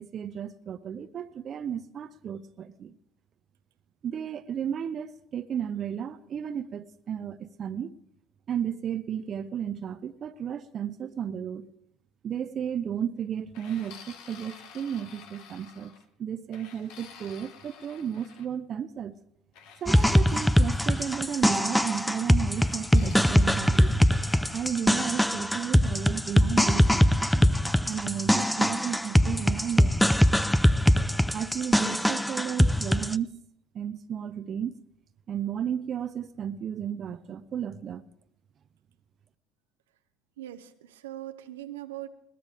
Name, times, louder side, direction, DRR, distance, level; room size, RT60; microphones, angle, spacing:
voice 1, 0.0-3.0 4.0-8.0 8.5-11.7 12.2-15.9 16.2-19.2 19.8-24.2 24.5-27.6 27.9-29.9 31.3-33.4 33.7-34.7 35.3-38.0, right 8 dB, 45° right, 0.7 m, -33 dB
sound 1, 13.5-16.1 16.5-18.5 19.5-21.6 22.6-24.7, left 7 dB, 65° left, 1.7 m, -50 dB
sound 2, 19.9-33.1, equal, 5° left, 0.6 m, -22 dB
voice 2, 40.4-42.1, right 14 dB, 85° right, 0.9 m, -40 dB
21.5 x 18.5 x 3.5 m
hypercardioid pair, 75°, 0 cm